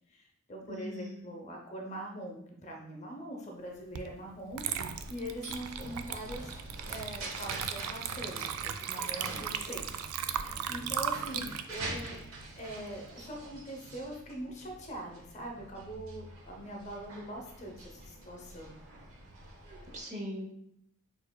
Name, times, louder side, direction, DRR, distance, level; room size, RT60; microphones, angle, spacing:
voice 1, 0.1-6.5 6.9-9.8 10.2-12.2 12.6-18.8, right 1 dB, 30° left, 1 dB, 0.7 m, -43 dB
voice 2, 0.7-1.4 11.3-11.4 19.6-20.5, left 1 dB, 30° right, 1 dB, 0.7 m, -41 dB
Water / Liquid, 3.9-4.1 4.5-13.1, right 8 dB, 90° right, 0.4 m, -37 dB
sound 1, 4.9-20.0, right 2 dB, 70° right, 1.0 m, -46 dB
6.5 x 3.1 x 2.2 m, 0.77 s
head